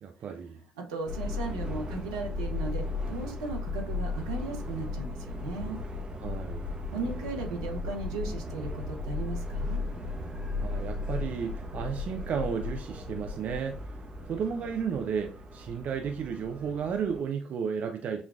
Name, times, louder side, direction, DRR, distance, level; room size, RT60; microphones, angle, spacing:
voice 1, 0.0-0.6 6.2-6.6 10.6-13.9 14.3-18.2, right 7 dB, 50° right, 0.4 m, -33 dB
voice 2, 0.8-5.8 6.9-9.8, right 4 dB, 80° right, 0.8 m, -36 dB
Subway metro underground, 1.1-17.2, left 3 dB, 30° right, 0.8 m, -36 dB
6.1 x 2.3 x 2.3 m
figure-of-eight pair, 50°, 3 cm